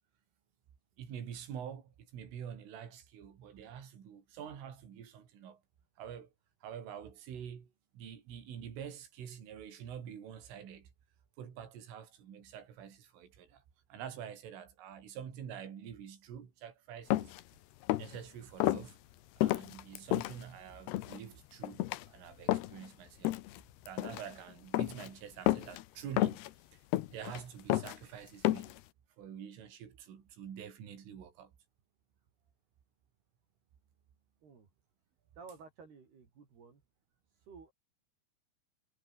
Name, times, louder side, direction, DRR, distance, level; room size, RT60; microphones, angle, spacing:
voice 1, 1.0-5.6 6.0-6.3 6.6-10.9 11.4-13.6 13.9-17.3 18.0-19.0 19.4-23.3 23.9-26.4 26.7-26.8 27.1-28.7 29.2-31.5, right 8 dB, 70° right, 6.5 m, -47 dB
sound 1, 17.1-17.4 17.8-18.2 18.6-18.8 19.4-20.3 20.9-21.2 21.6-22.0 22.5-22.9 23.3-23.6 23.9-24.3 24.7-25.1 25.5-25.8 26.2-26.5 26.9-27.4 27.7-28.0 28.5-28.8, left 16 dB, 75° left, 2.5 m, -31 dB
voice 2, 35.4-36.8 37.5-37.7, right 5 dB, 50° right, 6.3 m, -53 dB
omnidirectional pair, 5.9 m